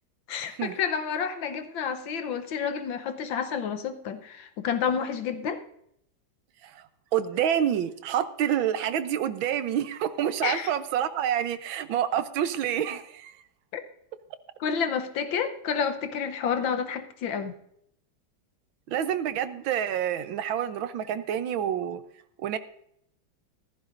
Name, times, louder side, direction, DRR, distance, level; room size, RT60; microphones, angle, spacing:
voice 1, 0.3-5.6 10.4-10.7 13.7-13.8 14.6-17.5, left 7 dB, 80° left, 9 dB, 1.7 m, -29 dB
voice 2, 7.1-13.3 18.9-22.0 22.4-22.6, right 10 dB, 85° right, 11 dB, 1.6 m, -27 dB
14.5 x 14.5 x 2.6 m, 0.72 s
omnidirectional pair, 2.1 m